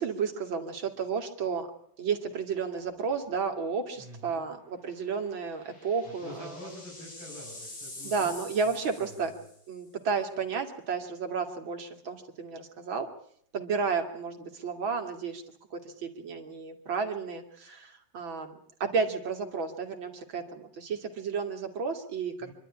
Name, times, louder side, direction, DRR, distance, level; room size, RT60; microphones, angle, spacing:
voice 1, 0.0-1.7 2.0-6.5 8.0-9.3 9.7-13.1 13.5-15.4 15.7-22.5, right 5 dB, 80° right, 4 dB, 3.0 m, -32 dB
sound 1, 2.9-3.2 3.5-3.6 5.1-9.7, left 2 dB, 55° left, 4.8 m, -46 dB
voice 2, 4.0-4.5 6.1-8.3 8.6-8.7 9.1-9.4 22.4-22.5, left 1 dB, 90° left, -2 dB, 7.2 m, -46 dB
25.5 x 12.0 x 9.9 m, 0.68 s
omnidirectional pair, 2.1 m